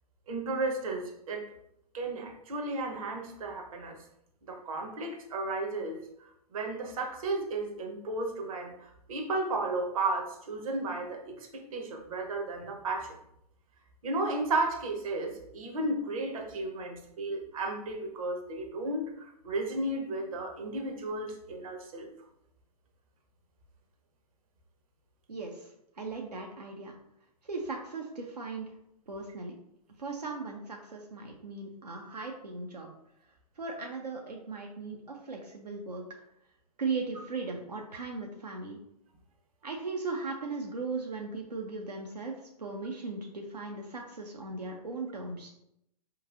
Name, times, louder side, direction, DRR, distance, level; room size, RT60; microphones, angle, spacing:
voice 1, 0.3-1.5 1.9-4.0 4.5-6.0 6.5-13.1 14.0-22.1, right 2 dB, 60° right, 3 dB, 0.8 m, -34 dB
voice 2, 25.3-26.9 27.4-28.8 29.1-29.6 30.0-32.9 33.6-36.0 36.8-38.8 39.6-42.3 42.6-45.5, right 3 dB, 90° right, 0 dB, 0.5 m, -38 dB
4.5 x 3.0 x 2.4 m, 0.78 s
figure-of-eight pair, 110°, 20 cm